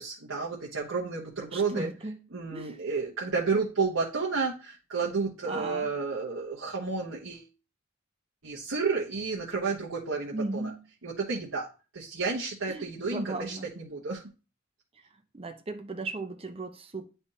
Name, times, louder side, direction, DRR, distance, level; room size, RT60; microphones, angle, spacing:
voice 1, 0.0-1.9 2.3-7.5 8.4-10.7 11.0-11.7 11.9-14.2, right 4 dB, 90° right, 1.1 m, -31 dB
voice 2, 1.5-2.2 2.5-2.8 5.5-5.9 10.3-10.8 12.7-13.7 15.3-17.0, right 2 dB, 30° right, 0.8 m, -36 dB
10.0 x 3.4 x 2.8 m
head